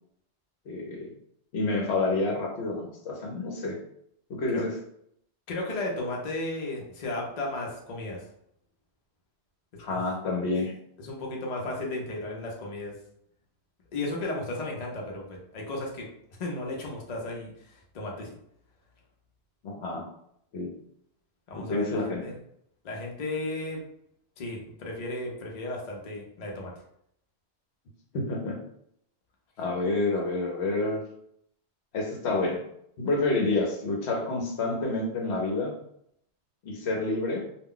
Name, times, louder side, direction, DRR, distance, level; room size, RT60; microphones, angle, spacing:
voice 1, 0.7-1.1 1.5-3.8 4.3-4.7 9.8-10.7 19.6-20.1 20.5-20.7 21.6-22.2 28.1-28.6 29.6-31.0 31.9-32.6 33.0-35.7 36.6-37.4, left 2 dB, 70° left, 0 dB, 0.9 m, -28 dB
voice 2, 5.5-8.2 9.9-10.0 11.0-12.9 13.9-16.1 16.4-18.3 21.5-22.3 22.8-23.8 24.4-26.7, left 2 dB, 45° left, -1 dB, 0.6 m, -34 dB
2.3 x 2.1 x 3.7 m, 0.72 s
omnidirectional pair, 1.2 m